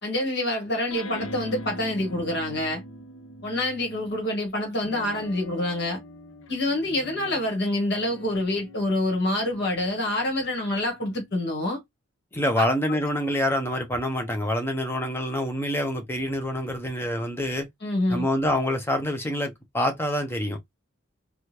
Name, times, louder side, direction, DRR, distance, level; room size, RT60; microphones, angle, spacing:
voice 1, 0.0-2.8 3.4-6.0 6.5-11.8 12.6-13.0 17.8-18.2, left 1 dB, 55° left, 1.4 m, -27 dB
sound 1, 0.9-4.3 4.8-11.6, equal, 75° left, 0.7 m, -43 dB
voice 2, 12.3-17.7 18.1-20.6, left 1 dB, 10° left, 0.6 m, -26 dB
3.5 x 2.3 x 2.9 m
head